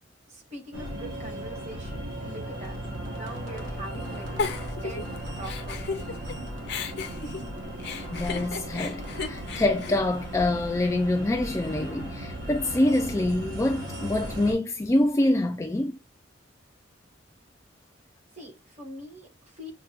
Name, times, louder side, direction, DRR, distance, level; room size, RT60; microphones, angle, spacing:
voice 1, 0.3-4.4 4.8-6.1 18.3-19.7, right 1 dB, 35° right, 1.3 m, -43 dB
sound 1, 0.7-14.5, right 1 dB, 80° right, 1.3 m, -37 dB
Giggle, 4.4-6.3 6.7-10.9, left 4 dB, 60° left, 0.6 m, -34 dB
voice 2, 8.1-16.0, left 1 dB, 15° left, 0.3 m, -25 dB
6.5 x 2.2 x 2.4 m
head